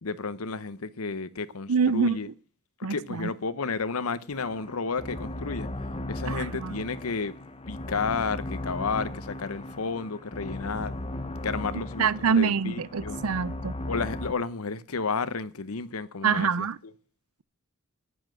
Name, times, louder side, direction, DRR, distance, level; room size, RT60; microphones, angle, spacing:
voice 1, 0.0-2.3 2.8-5.7 6.1-7.3 7.7-11.0 11.4-13.2 13.9-16.7, left 4 dB, 80° left, 0.9 m, -32 dB
voice 2, 1.7-2.2 2.8-3.3 6.3-6.7 12.0-13.7 16.2-16.8, right 6 dB, 80° right, 0.6 m, -25 dB
sound 1, 4.3-14.3, left 1 dB, 25° left, 0.9 m, -37 dB
10.0 x 9.8 x 7.7 m
head